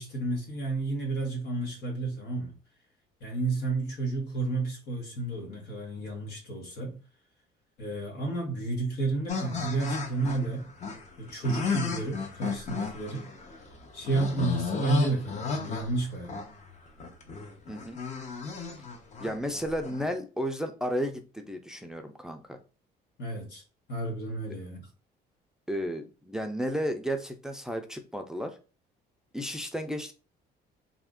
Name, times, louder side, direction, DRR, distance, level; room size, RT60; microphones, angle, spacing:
voice 1, 0.0-2.6 3.2-7.0 7.8-10.7 11.2-13.3 13.9-16.4 23.2-23.6 23.9-24.9, right 3 dB, 85° left, 1.3 m, -31 dB
sound 1, 9.3-20.1, left 5 dB, 45° left, 0.7 m, -34 dB
voice 2, 17.7-18.0 19.2-22.6 25.7-28.6 29.3-30.1, equal, 5° right, 0.4 m, -33 dB
2.7 x 2.4 x 3.5 m
cardioid pair, 110°, 17 cm